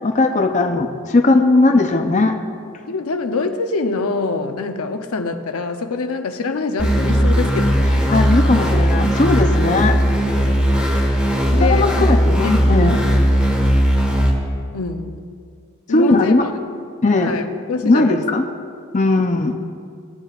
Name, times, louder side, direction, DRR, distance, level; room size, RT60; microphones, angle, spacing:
voice 1, 0.0-2.4 8.1-10.0 11.6-13.0 15.9-16.5 17.0-17.4 17.8-18.4 18.9-19.5, left 2 dB, 35° left, 4 dB, 0.6 m, -17 dB
voice 2, 2.8-8.0 10.3-10.6 11.1-12.1 12.4-13.0 14.7-15.2 15.9-16.5 17.1-18.2, left 3 dB, 85° left, 7 dB, 0.7 m, -25 dB
sound 1, 6.8-14.3, equal, 5° right, 1.5 m, -17 dB
18.0 x 9.7 x 2.5 m, 2.2 s
head